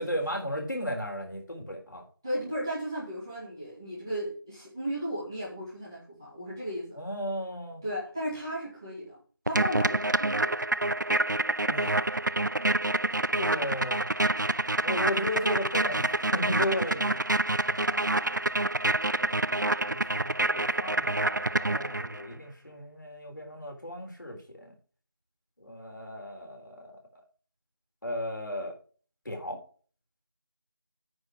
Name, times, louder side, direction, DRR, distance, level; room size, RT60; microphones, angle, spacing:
voice 1, 0.0-2.0 7.0-7.8 11.7-12.1 13.4-14.0 14.8-17.2 17.7-18.4 19.8-24.7 25.6-26.9 28.0-28.7 29.3-29.6, left 1 dB, 55° left, 1 dB, 3.7 m, -35 dB
voice 2, 2.2-7.0 7.8-9.2 9.4-10.5 12.6-12.8, equal, 10° right, -10 dB, 2.3 m, -35 dB
sound 1, 9.5-22.3, right 2 dB, 50° right, 0.4 m, -27 dB
9.6 x 4.7 x 7.2 m, 0.40 s
figure-of-eight pair, 175°, 12 cm